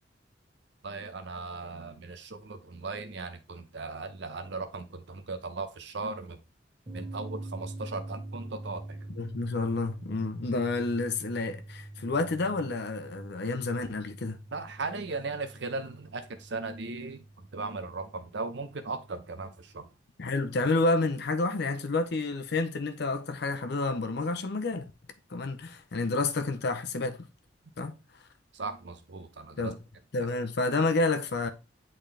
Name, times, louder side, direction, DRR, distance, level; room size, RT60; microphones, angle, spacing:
voice 1, 0.8-6.4 6.9-9.0 14.5-17.2 17.5-19.9 28.5-29.7, right 3 dB, 65° right, 0.7 m, -37 dB
sound 1, 6.9-19.8, right 2 dB, 30° right, 1.7 m, -45 dB
voice 2, 9.1-14.4 20.2-24.9 25.3-27.3 27.8-27.9 29.6-29.8 30.1-31.5, left 3 dB, 60° left, 0.7 m, -29 dB
8.6 x 3.9 x 3.3 m
head